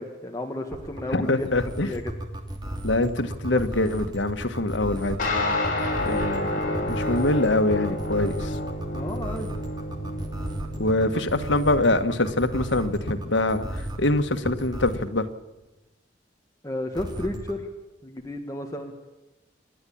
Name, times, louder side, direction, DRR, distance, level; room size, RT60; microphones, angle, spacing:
voice 1, 0.0-2.1 3.5-3.6 4.7-5.0 8.9-9.5 16.6-17.7 18.0-18.9, left 1 dB, 20° left, 2 dB, 1.7 m, -33 dB
sound 1, 0.7-15.1 16.9-17.5, right 1 dB, 25° right, 2.7 m, -34 dB
voice 2, 1.1-1.9 2.8-5.2 6.0-8.6 10.8-15.3, left 2 dB, 85° left, 8 dB, 1.6 m, -24 dB
sound 2, 5.2-13.0, left 1 dB, 50° left, 6.3 m, -30 dB
28.0 x 11.0 x 8.7 m, 1.0 s
head